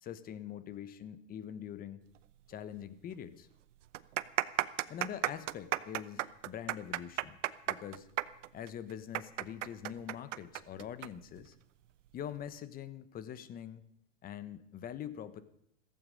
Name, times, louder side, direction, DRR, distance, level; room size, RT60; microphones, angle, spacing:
voice 1, 0.0-2.0 2.5-3.5 4.9-7.4 7.7-8.1 8.5-11.5 12.1-13.9 14.2-15.4, left 9 dB, 25° left, 14 dB, 1.1 m, -44 dB
sound 1, 2.7-2.8 3.1-3.2 3.8-11.1 11.4-11.5 12.2-12.5, right 14 dB, 75° right, 0.9 m, -34 dB
15.0 x 15.0 x 5.4 m, 0.76 s
hypercardioid pair, 130°, 37 cm